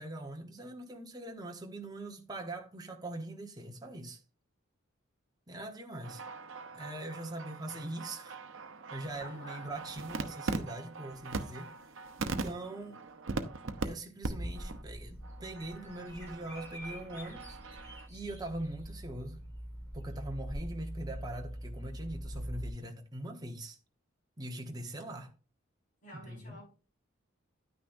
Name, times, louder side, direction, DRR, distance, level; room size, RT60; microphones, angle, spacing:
voice 1, 0.0-4.2 5.5-6.2 6.7-8.4 8.9-11.7 12.2-13.0 13.8-17.6 18.1-19.4 19.9-23.8 24.4-25.3 26.1-26.6, right 1 dB, 20° right, 1.1 m, -42 dB
sound 1, 6.0-13.9 14.2-14.3 14.5-14.8 15.2-18.1, right 3 dB, 70° right, 0.8 m, -41 dB
voice 2, 9.2-9.7 26.0-26.7, left 1 dB, 40° left, 5.0 m, -49 dB
Bird vocalization bird call bird song, 14.2-22.7, equal, 10° left, 5.1 m, -43 dB
10.0 x 9.4 x 2.6 m
head